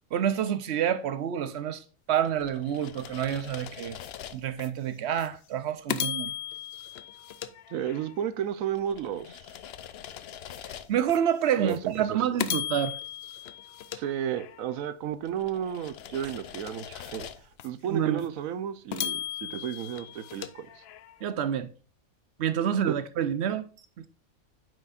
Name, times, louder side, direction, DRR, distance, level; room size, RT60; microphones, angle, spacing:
voice 1, 0.1-4.0 4.3-6.3 10.6-13.0 17.9-18.2 21.2-21.7 22.4-23.7 24.0-24.1, right 9 dB, 60° right, 0.8 m, -28 dB
sound 1, 2.2-4.7 5.2-5.3 5.9-8.3 8.7-11.2 11.7-11.8 12.4-14.8 15.2-17.7 18.2-18.3 18.9-21.2, left 10 dB, 60° left, 0.7 m, -38 dB
voice 2, 7.7-9.5 11.6-12.2 13.9-20.8 22.8-22.9, right 9 dB, 80° right, 1.1 m, -33 dB
9.2 x 6.3 x 2.4 m
omnidirectional pair, 1.4 m